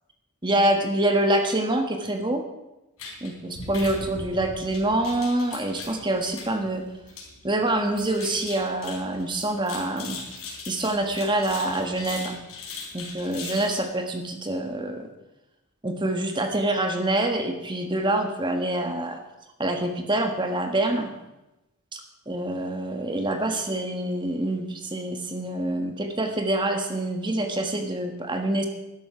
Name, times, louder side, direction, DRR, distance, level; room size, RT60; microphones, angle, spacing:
voice 1, 0.4-2.4 3.2-6.8 7.4-10.2 10.7-12.4 12.9-15.1 15.8-19.2 19.6-21.1 21.9-22.0 22.3-28.7, right 1 dB, 20° right, 5 dB, 1.4 m, -26 dB
sound 1, 3.0-13.8, left 4 dB, 75° left, 3.9 m, -40 dB
12.5 x 11.0 x 5.6 m, 0.97 s
head